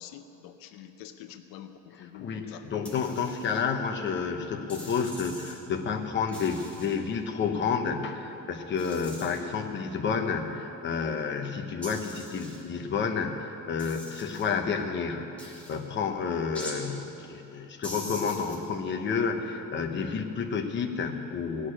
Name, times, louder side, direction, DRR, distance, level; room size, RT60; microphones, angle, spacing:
voice 1, 0.0-2.7 9.4-9.5, left 10 dB, 80° left, 8 dB, 0.8 m, -46 dB
voice 2, 2.0-21.7, left 5 dB, 35° left, 4 dB, 0.9 m, -30 dB
sound 1, 2.8-3.6 4.7-5.6 6.3-7.0 8.8-9.4 11.8-12.6 13.8-14.5 15.4-15.8 16.5-16.8 17.8-18.6, equal, 5° left, 2.3 m, -43 dB
17.5 x 6.5 x 10.0 m, 3.0 s
cardioid pair, 165°, 34 cm